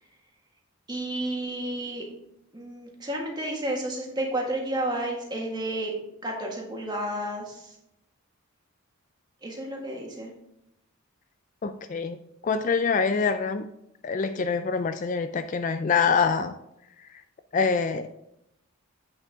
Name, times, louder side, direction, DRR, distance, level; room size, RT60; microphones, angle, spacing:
voice 1, 0.9-2.0 2.5-5.9 6.2-7.7 9.4-10.3, right 1 dB, 20° right, -1 dB, 1.7 m, -31 dB
voice 2, 11.6-13.7 14.0-16.5 17.1-17.2 17.5-18.1, left 5 dB, 35° left, 9 dB, 0.3 m, -25 dB
8.4 x 6.4 x 3.5 m, 0.80 s
head